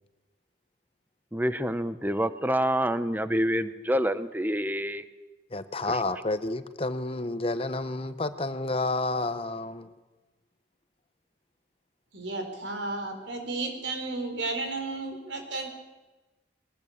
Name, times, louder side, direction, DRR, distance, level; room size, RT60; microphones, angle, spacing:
voice 1, 1.3-5.0 5.9-6.0, equal, 10° right, 13 dB, 0.8 m, -27 dB
voice 2, 5.5-9.9, left 2 dB, 30° left, 11 dB, 0.9 m, -30 dB
voice 3, 12.1-15.7, right 3 dB, 80° right, 5 dB, 4.2 m, -33 dB
21.0 x 19.0 x 8.7 m, 1.2 s
head